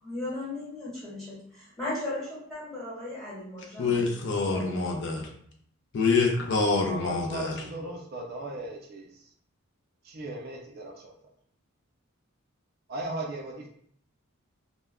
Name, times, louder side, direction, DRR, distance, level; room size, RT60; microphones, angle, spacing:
voice 1, 0.0-4.1 4.5-4.6, left 2 dB, ahead, 1.1 m, -36 dB
voice 2, 3.8-5.3 5.9-7.7, left 4 dB, 55° left, 0.4 m, -26 dB
voice 3, 6.9-9.0 10.1-11.1 12.9-13.7, right 2 dB, 50° right, 0.4 m, -37 dB
2.1 x 2.1 x 3.5 m
head